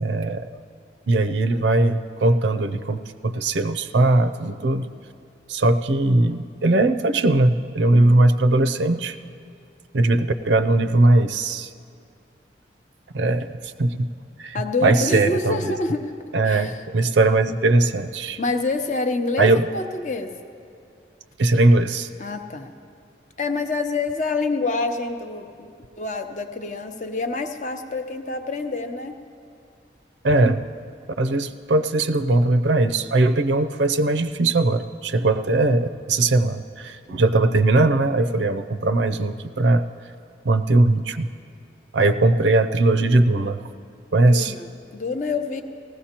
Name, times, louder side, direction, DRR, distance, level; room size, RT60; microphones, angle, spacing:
voice 1, 0.0-0.5 1.1-4.9 5.5-9.2 9.9-11.7 13.1-13.5 13.8-14.1 14.4-14.6 14.8-15.7 16.3-18.4 19.4-19.6 21.4-22.1 30.2-30.6 31.2-39.8 40.4-41.3 41.9-43.6 44.1-44.5, right 2 dB, 85° right, 10 dB, 0.5 m, -19 dB
voice 2, 14.5-16.1 16.4-17.1 18.4-20.3 22.2-22.7 23.4-25.7 26.0-29.2 44.3-45.6, left 3 dB, 40° left, 6 dB, 0.7 m, -27 dB
19.0 x 15.5 x 2.9 m, 2.4 s
head